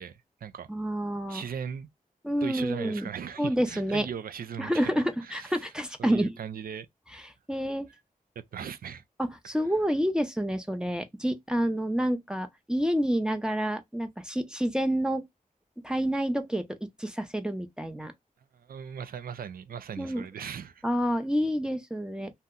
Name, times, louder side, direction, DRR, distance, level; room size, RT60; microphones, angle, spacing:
voice 1, 0.0-0.7 1.3-1.9 2.4-4.9 5.2-5.6 6.0-6.9 8.4-9.0 18.5-20.8, right 7 dB, 80° right, 0.4 m, -38 dB
voice 2, 0.7-1.4 2.2-3.1 3.4-4.1 4.6-6.4 7.1-7.2 7.5-7.9 9.2-15.2 15.8-18.1 20.0-20.2 20.8-22.3, equal, 5° right, 0.6 m, -28 dB
2.8 x 2.1 x 3.6 m
wide cardioid pair, 85°, 15 cm